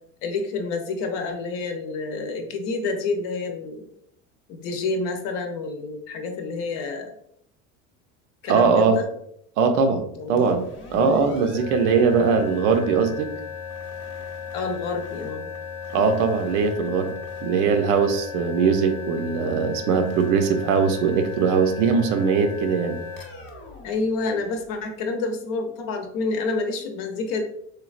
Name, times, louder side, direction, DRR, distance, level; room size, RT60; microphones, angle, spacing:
voice 1, 0.2-3.9 4.5-7.1 8.4-9.1 10.1-10.6 10.9-11.2 14.5-15.5 23.8-27.4, left 3 dB, 70° left, 5 dB, 0.7 m, -28 dB
voice 2, 8.5-9.0 9.6-13.3 15.9-17.1 17.4-23.0, right 5 dB, 80° right, 7 dB, 0.6 m, -21 dB
sound 1, 10.3-24.9, left 6 dB, 35° left, 0.7 m, -36 dB
3.2 x 2.3 x 2.4 m, 0.71 s
supercardioid pair, 95°, 35 cm